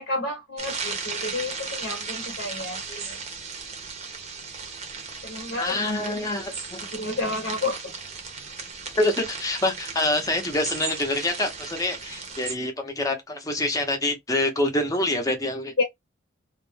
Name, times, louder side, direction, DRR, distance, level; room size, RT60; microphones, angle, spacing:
voice 1, 0.0-3.2 5.2-5.8 6.0-6.1 6.9-7.9 15.8-15.9, left 3 dB, 55° left, 0.8 m, -30 dB
sound 1, 0.6-12.6, right 5 dB, 35° right, 0.7 m, -36 dB
voice 2, 5.6-6.8 9.0-15.7, left 2 dB, 15° left, 0.7 m, -26 dB
2.4 x 2.1 x 3.3 m
head